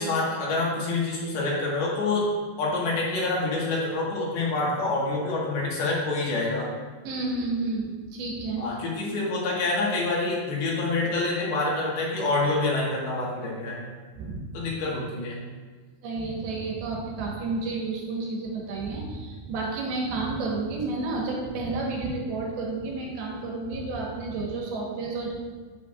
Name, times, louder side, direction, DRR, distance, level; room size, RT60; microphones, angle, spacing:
voice 1, 0.0-2.2 2.6-6.7 8.6-13.8 14.5-15.4, left 3 dB, 85° left, -4 dB, 3.5 m, -27 dB
voice 2, 7.0-8.6 14.1-14.4 16.0-25.3, right 3 dB, 85° right, -2 dB, 3.2 m, -31 dB
8.4 x 8.0 x 2.5 m, 1.4 s
omnidirectional pair, 4.3 m